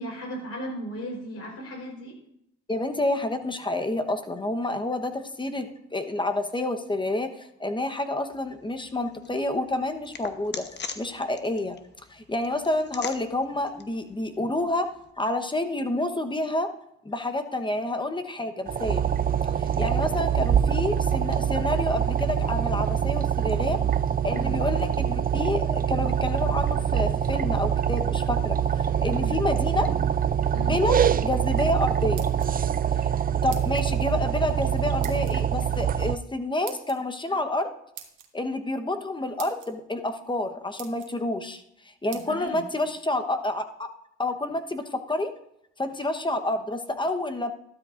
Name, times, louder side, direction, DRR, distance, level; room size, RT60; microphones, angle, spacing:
voice 1, 0.0-2.2 24.3-24.5 29.1-29.4 30.5-30.7 42.1-42.6, equal, 55° left, 1 dB, 4.2 m, -36 dB
voice 2, 2.7-10.7 11.0-11.8 12.1-14.9 15.2-16.7 17.0-19.1 19.6-23.8 24.2-29.9 30.6-31.0 31.2-32.3 33.4-37.7 38.3-41.6 42.0-43.9 44.2-45.3 45.8-47.5, left 2 dB, 15° left, 7 dB, 1.0 m, -29 dB
sound 1, 8.3-15.1, left 5 dB, 35° left, 1.0 m, -43 dB
sound 2, 18.7-36.2, right 9 dB, 30° right, 0.4 m, -25 dB
sound 3, 31.9-32.8 33.5-33.9 35.0-35.4 36.7-37.0 37.9-38.3 39.0-39.1 39.4-39.7 40.3-40.4 40.8-41.1 42.1-42.3, right 10 dB, 90° right, 1.3 m, -42 dB
13.0 x 12.5 x 2.5 m, 0.77 s
cardioid pair, 90°, 30 cm